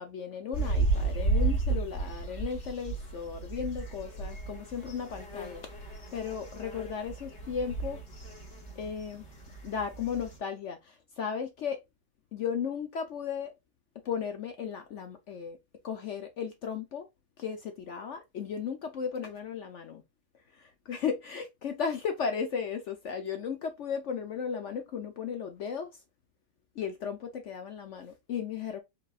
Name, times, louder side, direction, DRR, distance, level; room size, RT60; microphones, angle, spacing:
voice 1, 0.0-5.7 6.1-8.0 8.8-9.3 9.6-11.8 12.3-13.5 14.0-15.6 15.8-17.1 17.4-20.0 20.6-25.9 26.8-28.8, left 6 dB, 65° left, 0.7 m, -35 dB
sound 1, 0.5-10.4, right 3 dB, 45° left, 1.9 m, -33 dB
4.7 x 3.8 x 2.3 m
omnidirectional pair, 1.9 m